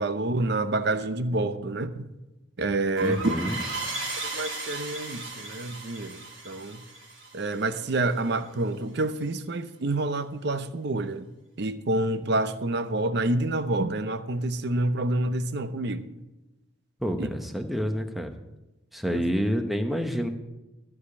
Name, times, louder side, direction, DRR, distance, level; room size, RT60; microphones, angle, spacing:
voice 1, 0.0-2.0 2.6-3.3 4.2-6.8 7.3-11.3 11.6-16.1 17.2-17.3 19.1-19.2, right 2 dB, 55° right, 0.6 m, -28 dB
voice 2, 3.0-3.6 17.0-18.3 18.9-20.3, equal, ahead, 0.8 m, -28 dB
sound 1, 3.0-8.3, right 2 dB, 75° right, 2.4 m, -36 dB
14.0 x 4.9 x 8.4 m
head